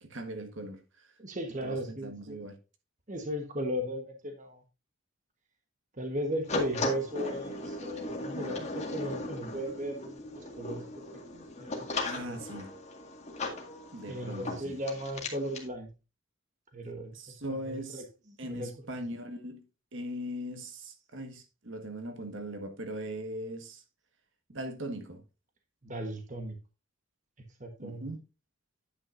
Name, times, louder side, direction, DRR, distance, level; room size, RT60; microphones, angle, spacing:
voice 1, 0.0-1.1 1.6-2.6 12.0-12.7 13.9-14.8 17.1-18.0 18.4-19.6 19.9-23.8 24.5-25.2 27.8-28.2, equal, 60° right, 1.5 m, -40 dB
voice 2, 1.2-2.5 3.1-4.6 5.9-10.8 11.3-12.4 14.1-15.9 16.7-17.1 17.5-18.7 25.8-26.5 27.6-28.1, equal, 35° right, 1.2 m, -36 dB
sound 1, 6.5-15.7, left 2 dB, 30° left, 1.9 m, -37 dB
10.0 x 8.8 x 2.6 m
head